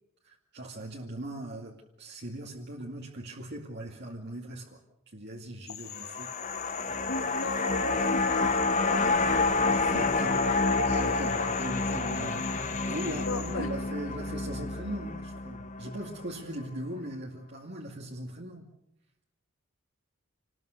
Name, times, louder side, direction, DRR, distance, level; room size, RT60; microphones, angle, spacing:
voice 1, 0.2-4.8 5.1-6.3 6.9-7.3 9.7-18.7, right 1 dB, 55° right, -1 dB, 2.4 m, -40 dB
sound 1, 5.7-13.5, left 11 dB, 85° left, 2.7 m, -43 dB
sound 2, 5.9-16.3 16.7-16.8, left 3 dB, 35° left, 1.4 m, -28 dB
voice 2, 7.1-9.8 10.2-10.3 13.2-13.7, left 2 dB, 70° left, 8 dB, 2.1 m, -38 dB
28.0 x 20.0 x 6.7 m, 0.81 s
head